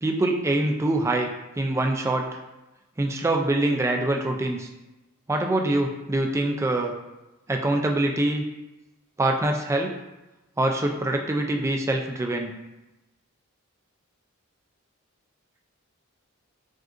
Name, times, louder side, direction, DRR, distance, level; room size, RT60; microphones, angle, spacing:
voice 1, 0.0-1.3 1.6-2.4 3.0-4.7 5.3-6.9 7.5-8.4 9.2-9.9 10.6-12.5, right 1 dB, 15° right, 2 dB, 0.3 m, -24 dB
6.1 x 2.5 x 2.5 m, 1.0 s
head